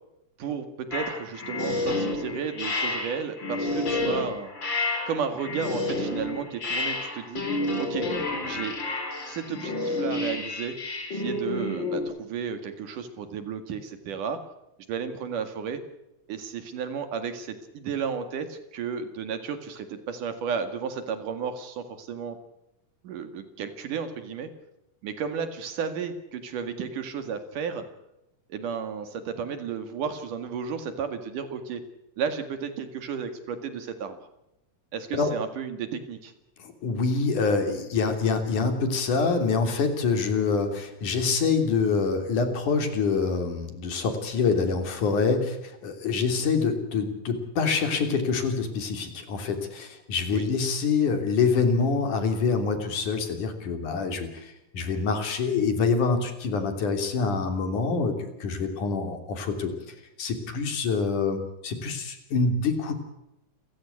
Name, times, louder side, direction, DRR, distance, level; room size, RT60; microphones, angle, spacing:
voice 1, 0.4-4.5 5.1-7.4 7.8-8.1 8.4-8.8 9.3-10.8 11.1-14.4 14.9-15.8 16.3-22.4 23.0-24.5 25.0-27.8 28.5-31.8 32.2-34.2 34.9-36.3 50.3-50.5, right 6 dB, 70° right, 9 dB, 3.5 m, -33 dB
sound 1, 0.9-12.0, left 2 dB, 35° left, 5.1 m, -30 dB
voice 2, 36.6-59.7 60.2-62.9, left 4 dB, 65° left, 7 dB, 4.6 m, -26 dB
29.5 x 15.5 x 8.4 m, 0.86 s
omnidirectional pair, 3.8 m